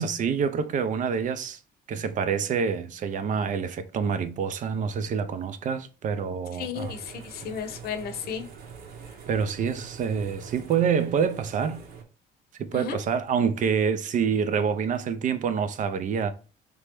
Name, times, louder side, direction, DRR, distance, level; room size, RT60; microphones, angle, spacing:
voice 1, 0.0-1.6 1.9-6.9 9.3-11.8 12.6-16.3, right 6 dB, 50° right, 0.5 m, -27 dB
voice 2, 6.5-8.5 12.7-13.0, left 6 dB, 65° left, 0.7 m, -34 dB
sound 1, 6.7-12.0, right 6 dB, 65° right, 1.0 m, -44 dB
3.3 x 2.9 x 3.4 m
cardioid pair, 110°, 17 cm